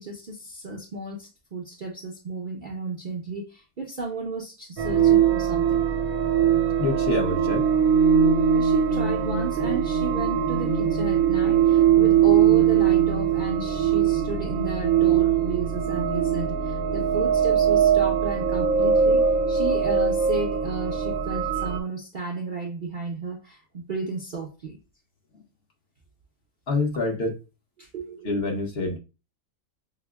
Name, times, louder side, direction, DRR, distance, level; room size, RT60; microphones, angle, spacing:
voice 1, 0.0-5.8 8.5-24.8 27.8-28.3, right 3 dB, 50° right, 0.6 m, -33 dB
sound 1, 4.8-21.8, right 8 dB, 75° right, 1.1 m, -21 dB
voice 2, 6.8-7.7 25.3-25.4 26.7-27.4 28.2-29.0, left 2 dB, 50° left, 1.0 m, -26 dB
5.7 x 2.1 x 2.2 m
omnidirectional pair, 1.6 m